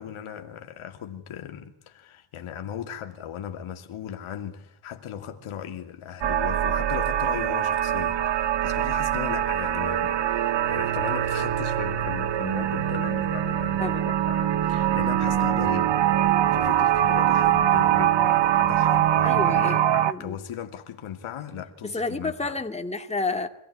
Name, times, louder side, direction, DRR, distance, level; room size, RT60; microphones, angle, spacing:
voice 1, 0.0-15.9 16.5-22.5, left 9 dB, 80° left, 2.8 m, -37 dB
sound 1, 6.2-20.1, right 11 dB, 60° right, 1.1 m, -23 dB
voice 2, 13.8-14.1 19.2-19.8 20.0-20.4 21.8-23.5, left 3 dB, 15° left, 2.3 m, -30 dB
25.0 x 16.0 x 9.9 m
cardioid pair, 115°, 48 cm